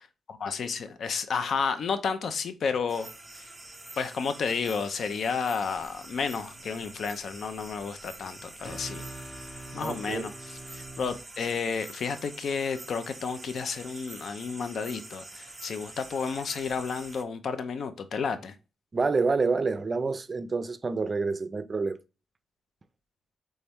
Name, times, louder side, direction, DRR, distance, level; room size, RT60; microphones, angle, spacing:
voice 1, 0.3-3.1 3.3-3.5 4.0-9.0 9.7-10.3 10.7-18.5, left 5 dB, 65° left, 0.6 m, -31 dB
sound 1, 2.9-17.2, right 2 dB, 15° right, 0.9 m, -46 dB
sound 2, 5.6-11.2, right 1 dB, 45° left, 1.0 m, -46 dB
voice 2, 9.8-10.3 18.9-22.0, right 4 dB, 35° right, 0.4 m, -28 dB
4.1 x 3.4 x 3.5 m
cardioid pair, 95°, 0 cm